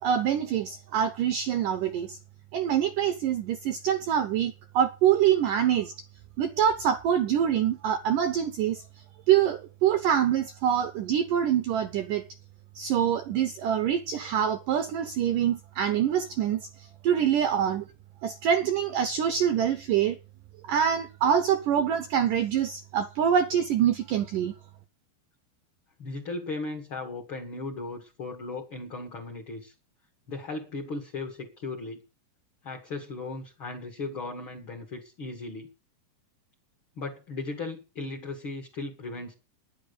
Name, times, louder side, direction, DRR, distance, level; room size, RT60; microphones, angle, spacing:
voice 1, 0.0-2.2 2.5-5.9 6.4-8.8 9.3-12.2 12.8-17.9 18.2-20.2 20.6-24.5, right 9 dB, 85° right, 1.9 m, -25 dB
voice 2, 26.0-29.7 30.3-32.0 32.6-35.7 37.0-39.3, left 3 dB, 40° left, 2.0 m, -37 dB
10.5 x 10.5 x 6.9 m
omnidirectional pair, 5.1 m